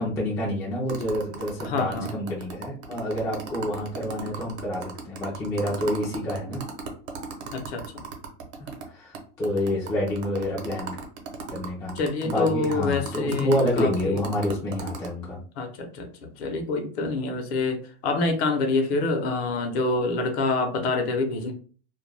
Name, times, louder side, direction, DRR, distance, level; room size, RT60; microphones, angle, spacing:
voice 1, 0.0-6.6 8.6-11.0 11.5-11.9 12.2-15.4, left 1 dB, 10° left, -5 dB, 0.3 m, -28 dB
sound 1, 0.9-8.9 9.1-9.2 9.4-15.1, right 5 dB, 65° right, 0.9 m, -36 dB
voice 2, 1.6-2.1 7.5-8.1 12.0-14.2 15.6-21.5, left 3 dB, 60° left, 5 dB, 0.8 m, -26 dB
2.4 x 2.2 x 3.2 m, 0.41 s
supercardioid pair, 155°, 36 cm